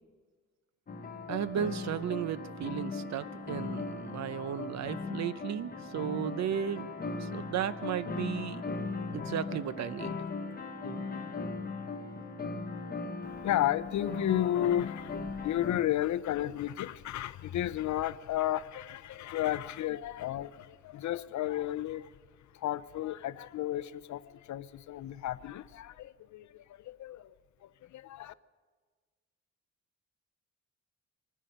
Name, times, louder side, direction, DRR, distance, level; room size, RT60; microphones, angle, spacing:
sound 1, 0.9-15.8, left 3 dB, 30° left, 1.1 m, -38 dB
voice 1, 1.3-6.9 7.2-8.6 9.1-10.1, right 9 dB, 65° right, 0.7 m, -35 dB
voice 2, 13.4-22.1 22.5-27.3 27.6-28.3, left 12 dB, 75° left, 0.6 m, -33 dB
25.5 x 10.0 x 5.3 m
wide cardioid pair, 150°, 30 cm